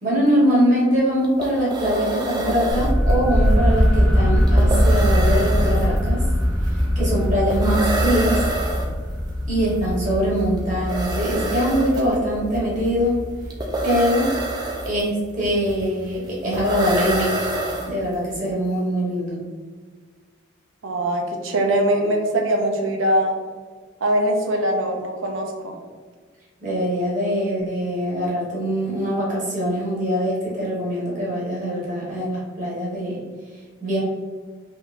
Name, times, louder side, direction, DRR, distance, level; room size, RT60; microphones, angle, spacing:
voice 1, 0.0-6.3 6.9-8.4 9.5-13.2 13.8-14.3 14.8-17.6 17.9-19.4 26.6-33.2 33.8-34.0, equal, 40° right, -6 dB, 1.1 m, -23 dB
sound 1, 0.9-1.0 1.2-18.3, right 2 dB, 20° right, 0.3 m, -28 dB
sound 2, 2.7-14.5, equal, 5° left, 0.8 m, -21 dB
voice 2, 20.8-23.4 24.0-25.8, right 1 dB, 75° right, 3 dB, 0.5 m, -22 dB
3.4 x 2.9 x 2.4 m, 1.5 s
head